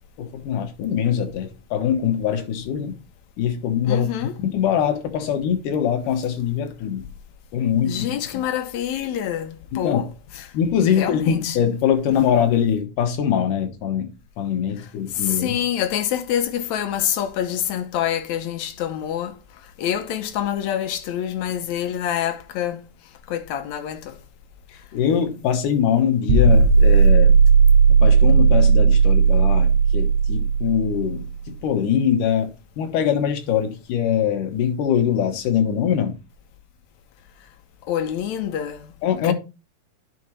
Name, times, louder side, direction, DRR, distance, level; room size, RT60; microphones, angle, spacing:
voice 1, 0.2-3.0 3.4-7.1 7.5-8.4 9.7-10.0 10.5-15.6 24.9-27.4 28.0-36.2 39.0-39.3, left 8 dB, 90° left, 2.8 m, -23 dB
voice 2, 3.8-4.3 7.8-10.1 10.4-10.5 10.9-11.6 15.1-19.4 19.8-22.8 23.3-24.2 37.9-38.9 39.2-39.3, left 10 dB, 75° left, 2.0 m, -26 dB
sound 1, 26.3-31.3, right 5 dB, 85° right, 2.2 m, -15 dB
10.5 x 5.0 x 3.1 m
omnidirectional pair, 3.6 m